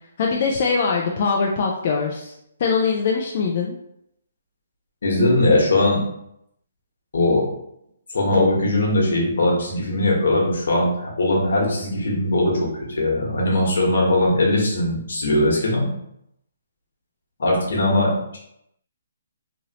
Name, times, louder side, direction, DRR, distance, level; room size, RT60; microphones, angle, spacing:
voice 1, 0.2-2.3 2.6-3.7, left 5 dB, 40° left, -1 dB, 0.4 m, -22 dB
voice 2, 5.0-6.0 7.1-7.4 8.1-12.7 13.0-15.9 17.4-18.4, left 1 dB, 70° left, -2 dB, 1.2 m, -20 dB
3.1 x 2.6 x 2.8 m, 0.76 s
hypercardioid pair, 165°, 0 cm